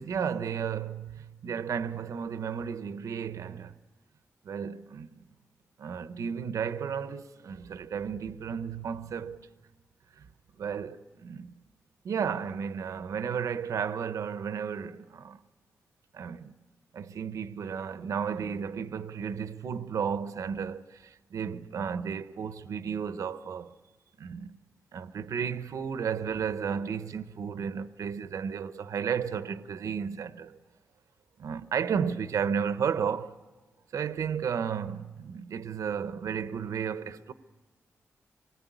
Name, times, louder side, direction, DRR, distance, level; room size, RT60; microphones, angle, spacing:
voice 1, 0.0-3.7 4.4-5.3 5.8-9.4 10.2-10.3 10.6-11.5 12.0-15.4 16.1-16.5 16.9-23.7 24.2-24.6 24.9-30.6 31.4-33.4 33.9-37.3, right 7 dB, 85° right, 0.8 m, -33 dB
25.0 x 20.0 x 9.2 m
wide cardioid pair, 150°, 6 cm